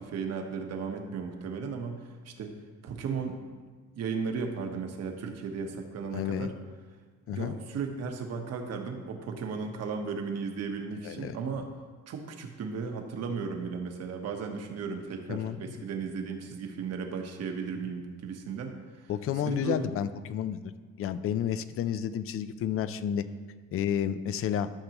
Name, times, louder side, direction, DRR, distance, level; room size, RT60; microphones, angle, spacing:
voice 1, 0.0-2.6 2.8-3.4 4.0-6.5 7.3-11.7 12.1-19.1 19.4-19.9, right 5 dB, 55° right, 4 dB, 1.1 m, -35 dB
voice 2, 6.1-6.5 7.3-7.5 11.0-11.4 15.3-15.8 19.1-20.7 21.0-23.2 23.7-24.7, left 9 dB, 45° left, 13 dB, 0.4 m, -31 dB
13.0 x 6.7 x 3.0 m, 1.5 s
cardioid pair, 165°, 31 cm